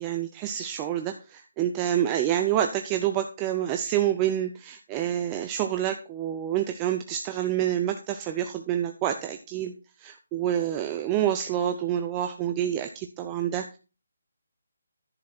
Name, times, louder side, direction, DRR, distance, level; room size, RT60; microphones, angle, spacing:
voice 1, 0.0-9.7 10.0-13.8, right 11 dB, 15° right, 5 dB, 0.4 m, -28 dB
10.5 x 6.4 x 4.2 m, 0.31 s
hypercardioid pair, 175°, 0 cm